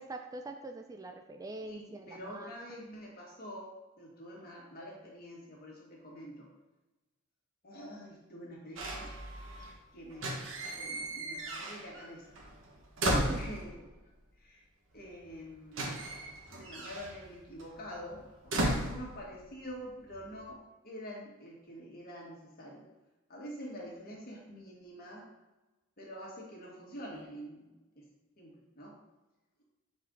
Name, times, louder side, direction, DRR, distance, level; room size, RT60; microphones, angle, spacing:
voice 1, 0.0-2.5 13.1-13.4, right 2 dB, 15° right, 5 dB, 0.3 m, -42 dB
voice 2, 1.6-3.7 4.0-6.5 7.6-9.1 9.9-10.3 10.7-12.4 13.1-13.8 14.4-14.6 14.9-16.0 16.5-22.8 23.3-25.3 26.0-28.0 28.4-28.9, equal, 45° left, -3 dB, 2.0 m, -46 dB
sound 1, 8.8-9.8 10.1-12.1 12.4-14.0 14.9-15.0 15.2-19.7 20.0-20.5, right 1 dB, 65° right, 1.3 m, -36 dB
7.2 x 4.4 x 4.0 m, 1.0 s
head